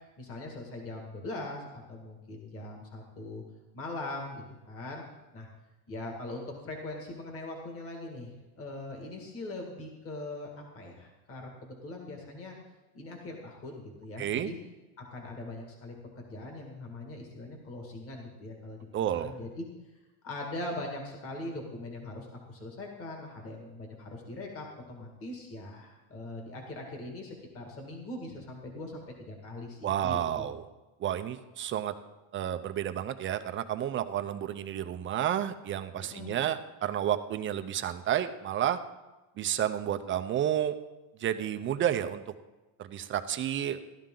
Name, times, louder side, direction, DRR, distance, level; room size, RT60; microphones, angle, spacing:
voice 1, 0.2-3.4 3.7-5.0 5.3-5.5 5.9-12.6 12.9-14.6 15.0-19.6 20.2-30.5 36.0-36.4, left 2 dB, 30° left, 1 dB, 2.0 m, -41 dB
voice 2, 14.2-14.5 18.9-19.3 29.8-30.6 31.0-31.9 32.3-38.8 39.4-40.8 41.2-42.2 42.8-43.8, right 10 dB, 25° right, 9 dB, 0.5 m, -31 dB
15.5 x 12.0 x 3.8 m, 1.1 s
cardioid pair, 145°, 46 cm